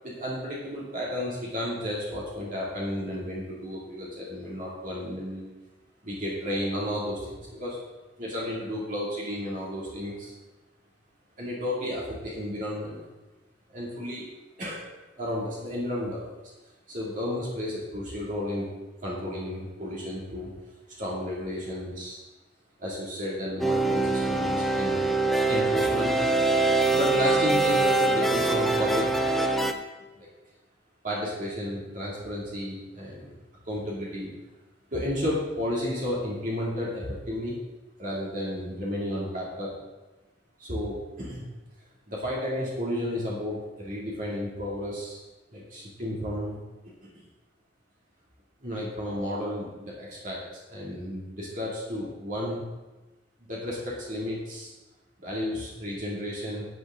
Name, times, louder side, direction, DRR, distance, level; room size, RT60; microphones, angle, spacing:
voice 1, 0.0-5.5 6.0-7.8 8.2-10.3 11.4-13.0 13.7-14.2 14.6-14.8 15.2-16.3 16.9-18.6 19.0-20.5 21.0-22.2 22.8-25.0 25.5-26.1 26.9-29.3 30.1-30.3 31.0-33.3 33.6-34.3 34.9-37.6 38.0-39.7 40.6-41.5 42.1-45.2 45.5-46.6 47.0-47.3 48.6-50.4 50.7-52.6 53.5-54.7 55.2-56.7, left 1 dB, 45° right, -5 dB, 2.8 m, -32 dB
sound 1, 23.6-29.7, right 2 dB, ahead, 0.6 m, -24 dB
12.5 x 9.0 x 3.9 m, 1.1 s
head